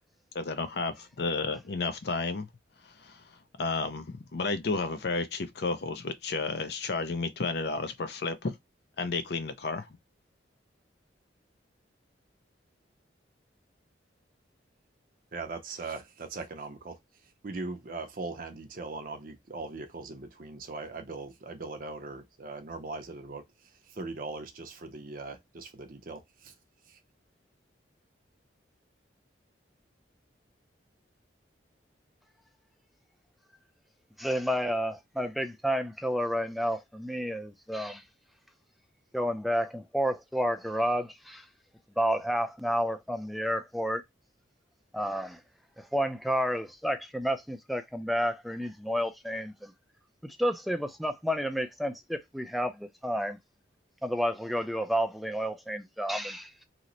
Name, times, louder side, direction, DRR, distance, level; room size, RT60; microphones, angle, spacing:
voice 1, 0.3-2.5 3.0-3.2 3.6-8.5 9.0-9.9, left 3 dB, 60° left, 0.5 m, -32 dB
voice 2, 15.3-17.0 17.4-23.4 23.9-26.5 26.9-27.0, right 3 dB, 50° right, 0.6 m, -40 dB
voice 3, 34.2-38.0 39.1-41.4 42.0-44.0 44.9-45.4 45.8-49.7 50.2-53.4 54.0-56.5, equal, ahead, 0.3 m, -30 dB
2.9 x 2.1 x 3.8 m
head